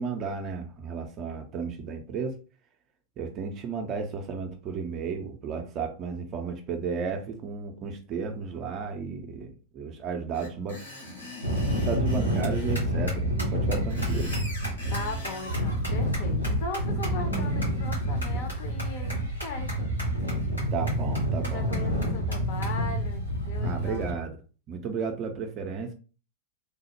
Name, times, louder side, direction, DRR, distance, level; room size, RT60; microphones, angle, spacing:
voice 1, 0.0-2.4 3.2-10.8 11.8-14.3 20.7-21.7 23.6-24.3 24.7-25.9, right 5 dB, 35° right, 4 dB, 0.4 m, -33 dB
Screech, 10.3-12.8 13.7-15.6, left 1 dB, 70° left, 1.3 m, -42 dB
sound 1, 11.4-24.1, equal, 90° left, 1.4 m, -28 dB
voice 2, 14.9-19.9 21.4-24.1, left 3 dB, 50° left, 4 dB, 0.7 m, -38 dB
3.2 x 2.0 x 2.9 m, 0.36 s
figure-of-eight pair, 90°, 0 cm